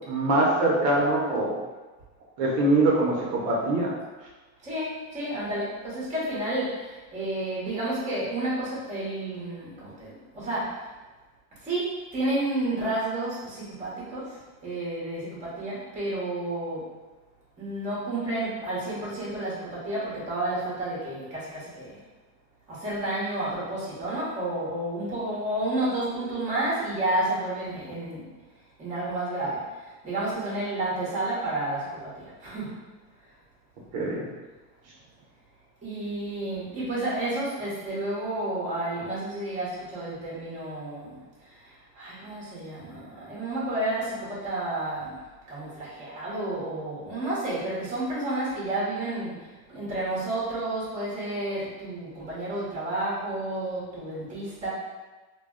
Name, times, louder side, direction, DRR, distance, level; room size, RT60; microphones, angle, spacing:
voice 1, 0.1-1.6 2.4-3.9 33.9-34.2, right 2 dB, 60° right, -3 dB, 0.7 m, -23 dB
voice 2, 4.6-10.8 11.6-11.9 12.1-14.3 14.6-16.8 17.6-22.0 22.7-28.2 28.8-29.6 30.0-31.9 32.1-32.7 35.8-41.2 42.0-45.1 45.5-49.4 49.7-54.7, right 1 dB, 15° right, -8 dB, 0.8 m, -31 dB
2.2 x 2.1 x 3.5 m, 1.2 s
supercardioid pair, 150°, 50 cm